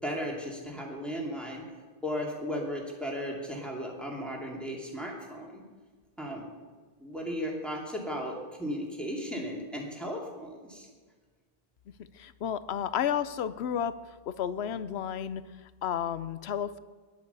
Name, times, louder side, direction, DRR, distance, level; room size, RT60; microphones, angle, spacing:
voice 1, 0.0-1.6 2.0-5.6 6.2-6.5 7.0-10.9, equal, ahead, -2 dB, 2.4 m, -35 dB
voice 2, 12.1-14.0 14.3-16.8, left 9 dB, 85° left, 14 dB, 0.9 m, -32 dB
13.5 x 11.0 x 6.9 m, 1.5 s
omnidirectional pair, 1.1 m